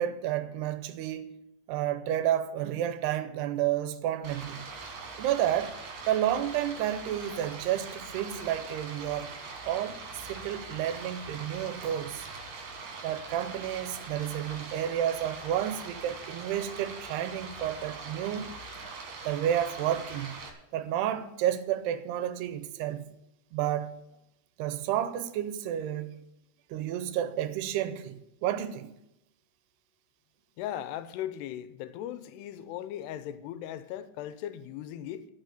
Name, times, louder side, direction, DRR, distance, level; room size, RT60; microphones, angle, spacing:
voice 1, 0.0-1.4 1.7-4.7 5.2-5.8 6.1-9.3 9.7-12.3 13.0-18.5 19.3-20.4 20.7-23.0 23.5-24.0 24.6-26.2 26.7-28.9, right 11 dB, 80° right, 2.8 m, -31 dB
Stream, 4.2-20.5, right 4 dB, 55° right, 2.9 m, -42 dB
voice 2, 30.6-35.3, left 11 dB, 85° left, 2.8 m, -38 dB
12.5 x 6.1 x 9.1 m
omnidirectional pair, 4.7 m